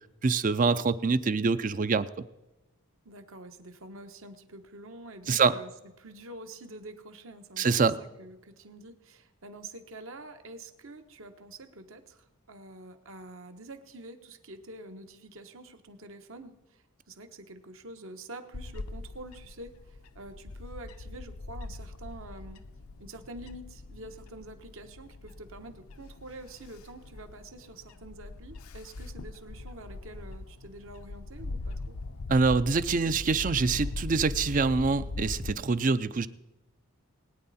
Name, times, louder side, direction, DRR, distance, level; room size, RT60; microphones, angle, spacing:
voice 1, 0.2-2.1 5.3-5.5 7.6-8.0 32.3-36.3, right 4 dB, 35° right, 14 dB, 0.4 m, -25 dB
voice 2, 3.0-5.7 6.0-22.6 23.0-32.0, right 2 dB, 65° right, 7 dB, 1.2 m, -47 dB
Bird / Wind, 18.5-35.5, left 2 dB, 75° left, 0.7 m, -41 dB
20.5 x 9.5 x 4.2 m, 1.0 s
head